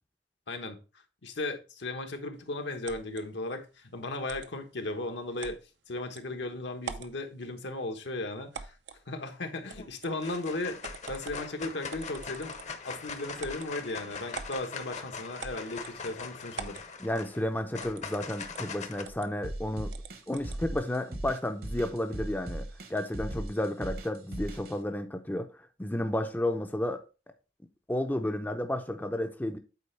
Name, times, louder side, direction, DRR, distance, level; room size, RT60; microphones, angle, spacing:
voice 1, 0.5-0.8 1.2-5.6 5.9-8.8 9.1-10.8 11.1-12.6 12.8-16.8, left 2 dB, 75° left, 1.1 m, -36 dB
sound 1, 2.8-3.2 4.3-4.5 5.4-5.6 6.2-6.3 6.8-7.2 8.5-9.0 9.7-10.1 10.8-11.5 11.9-12.8 13.4-13.7 14.3-14.6 15.4-16.0 16.5-16.9 17.8-18.1 18.4-18.6 19.0-19.3 19.9-20.6, right 5 dB, 75° right, 0.6 m, -43 dB
sound 2, 9.5-9.9 10.2-19.0, left 5 dB, 40° left, 0.8 m, -42 dB
voice 2, 17.0-19.9 20.3-27.0 27.9-29.6, left 1 dB, 10° left, 0.5 m, -32 dB
sound 3, 19.4-24.7, right 1 dB, 55° right, 1.1 m, -38 dB
8.3 x 4.3 x 3.2 m
head